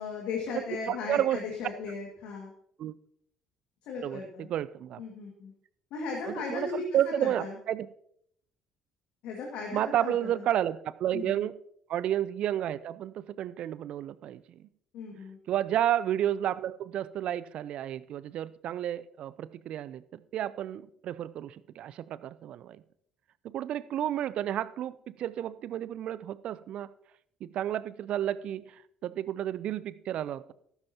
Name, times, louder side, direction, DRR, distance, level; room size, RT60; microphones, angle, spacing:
voice 1, 0.0-2.5 3.8-4.5 5.0-5.5 5.9-6.8 7.2-7.6 9.2-10.5 11.1-11.5 14.9-15.4, left 5 dB, 65° left, -1 dB, 2.1 m, -37 dB
voice 2, 0.5-1.4 2.8-2.9 4.0-5.0 6.2-7.9 9.7-11.5 11.9-14.6 15.5-22.8 23.4-26.9 27.4-30.5, right 11 dB, 55° right, 17 dB, 0.5 m, -31 dB
14.0 x 13.0 x 2.9 m, 0.70 s
figure-of-eight pair, 50°, 2 cm